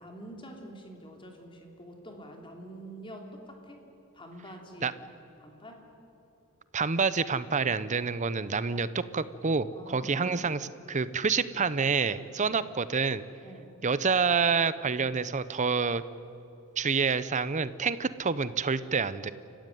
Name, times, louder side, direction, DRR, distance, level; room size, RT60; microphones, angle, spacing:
voice 1, 0.0-3.8 4.1-5.0 5.4-5.8 9.7-10.5 12.4-12.6 13.4-13.7, right 1 dB, 25° left, 2 dB, 3.1 m, -46 dB
voice 2, 6.7-13.2 13.8-16.0 16.8-19.3, right 5 dB, 35° right, 15 dB, 0.7 m, -28 dB
29.0 x 15.5 x 9.3 m, 2.9 s
head